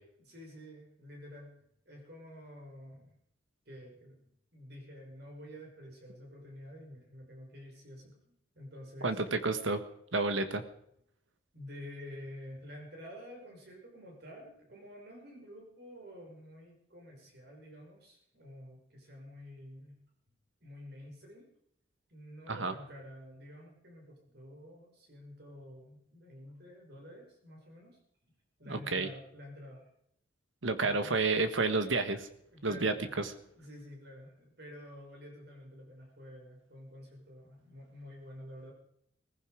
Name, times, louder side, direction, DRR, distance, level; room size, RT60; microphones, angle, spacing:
voice 1, 0.2-1.5 1.9-3.2 3.7-9.2 11.5-19.9 20.6-21.5 22.1-28.0 28.6-29.9 30.8-31.2 32.5-33.1 33.6-38.7, equal, 55° right, 1 dB, 5.9 m, -49 dB
voice 2, 9.0-9.8 10.1-10.6 22.5-22.7 28.7-29.1 30.6-32.3 32.6-33.3, right 3 dB, 85° right, 9 dB, 1.5 m, -30 dB
18.5 x 15.5 x 5.1 m, 0.71 s
head